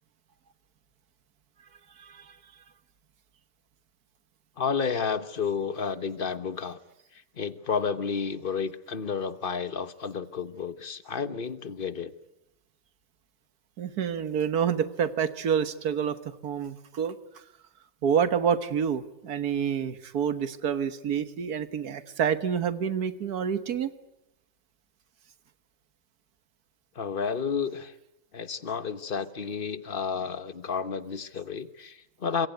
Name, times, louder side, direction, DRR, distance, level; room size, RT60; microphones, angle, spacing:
voice 1, 2.0-2.4 13.8-17.2 18.0-23.9, right 7 dB, 85° right, 13 dB, 1.8 m, -28 dB
voice 2, 4.6-6.8 7.1-12.1 26.9-27.9 28.3-32.5, left 6 dB, 40° left, 14 dB, 1.3 m, -31 dB
25.5 x 22.5 x 9.3 m, 0.84 s
omnidirectional pair, 1.6 m